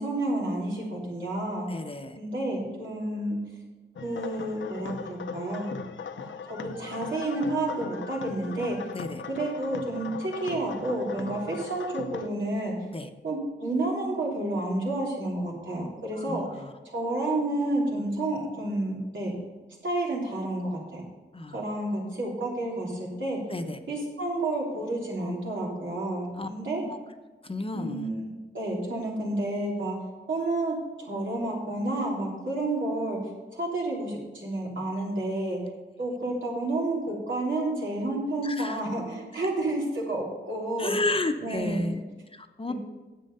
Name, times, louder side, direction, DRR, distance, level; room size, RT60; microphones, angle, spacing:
voice 1, 0.0-1.7 2.1-3.4 4.0-5.7 6.2-8.8 9.3-12.7 13.2-16.4 16.8-19.3 19.8-21.0 21.5-23.4 23.9-26.8 27.7-30.0 30.3-33.2 33.5-35.6 36.0-41.0 41.4-41.9 42.7-42.8, right 2 dB, 85° right, -3 dB, 3.3 m, -30 dB
voice 2, 1.7-2.2 8.9-9.2 12.9-13.1 16.1-16.6 21.3-21.6 23.5-23.8 26.4-26.5 26.8-27.0 27.4-28.1 38.4-38.8 40.8-42.0 42.3-42.7, left 2 dB, 30° left, 7 dB, 0.8 m, -31 dB
sound 1, 4.0-12.3, left 6 dB, 85° left, 0.7 m, -39 dB
10.0 x 7.8 x 5.5 m, 1.2 s
wide cardioid pair, 110°, 19 cm